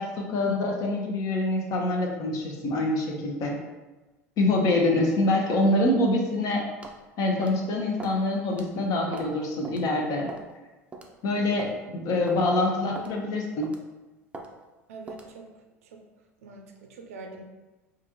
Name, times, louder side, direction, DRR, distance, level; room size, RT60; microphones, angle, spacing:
voice 1, 0.0-3.6 4.4-6.6 7.2-10.3 11.2-13.7, left 2 dB, 45° left, 1 dB, 0.8 m, -25 dB
sound 1, 6.8-7.0 7.4-7.6 8.0-8.2 8.5-8.7 9.1-9.4 9.6-9.8 10.3-10.5 10.9-11.1 11.6-11.8 12.3-12.4 13.0-13.1 13.6-13.9 14.3-14.5 15.1-15.3, right 3 dB, 15° right, 0.5 m, -40 dB
voice 2, 14.9-15.5 15.8-16.0 16.4-17.4, right 3 dB, 70° right, 3 dB, 0.5 m, -44 dB
4.4 x 2.5 x 2.8 m, 1.1 s
figure-of-eight pair, 75°, 8 cm